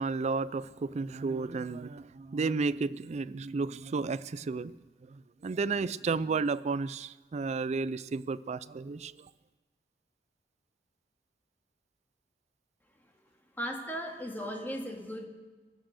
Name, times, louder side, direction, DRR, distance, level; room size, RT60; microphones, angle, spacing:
voice 1, 0.0-4.7 5.0-9.3, right 4 dB, 40° right, 0.4 m, -32 dB
voice 2, 13.5-15.3, equal, 10° left, 2.0 m, -37 dB
22.5 x 8.2 x 6.4 m
head